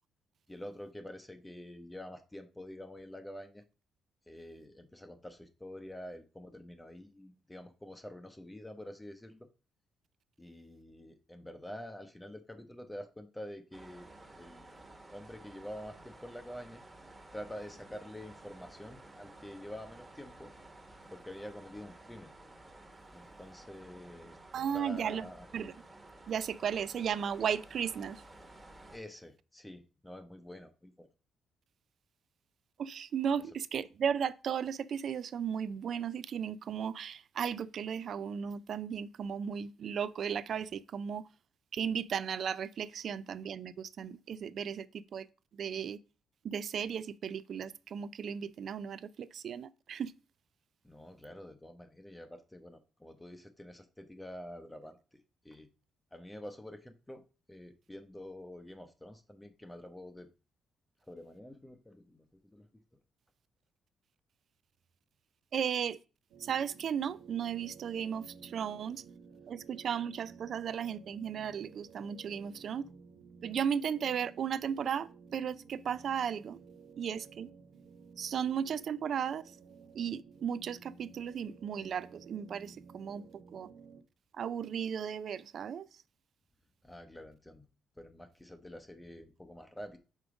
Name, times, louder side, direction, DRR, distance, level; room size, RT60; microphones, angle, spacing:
voice 1, 0.5-3.6 4.3-9.5 10.4-14.1 14.4-14.7 15.1-16.8 17.3-20.5 21.1-22.3 23.1-24.4 24.7-25.5 28.9-31.1 50.8-55.7 56.1-57.2 57.5-60.3 61.1-62.8 86.8-87.7 88.0-90.0, left 1 dB, 10° left, 0.7 m, -47 dB
sound 1, 13.7-29.0, right 2 dB, 20° right, 1.2 m, -54 dB
voice 2, 24.5-25.3 25.5-25.7 26.3-28.2 32.8-41.3 41.7-45.3 45.5-46.0 46.4-50.1 65.5-66.0 66.4-69.0 69.5-72.8 73.4-76.6 77.0-77.5 78.2-79.5 79.9-83.2 83.5-83.7 84.3-85.9, right 8 dB, 60° right, 0.4 m, -35 dB
sound 2, 66.3-84.0, right 5 dB, 85° right, 0.8 m, -55 dB
5.2 x 3.7 x 4.9 m
cardioid pair, 90°, 0 cm